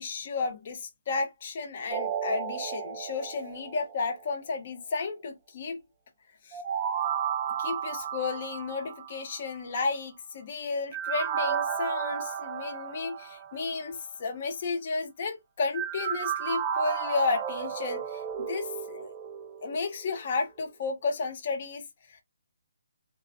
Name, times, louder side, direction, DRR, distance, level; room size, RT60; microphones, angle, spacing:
voice 1, 0.0-5.8 6.4-6.6 7.6-19.1 19.6-22.2, left 4 dB, 30° left, 0.9 m, -33 dB
sound 1, 1.9-4.2 6.5-9.5 10.9-13.7 15.7-20.2 20.6-20.7, right 8 dB, 20° right, 0.3 m, -33 dB
3.8 x 2.2 x 2.5 m
hypercardioid pair, 175°, 0 cm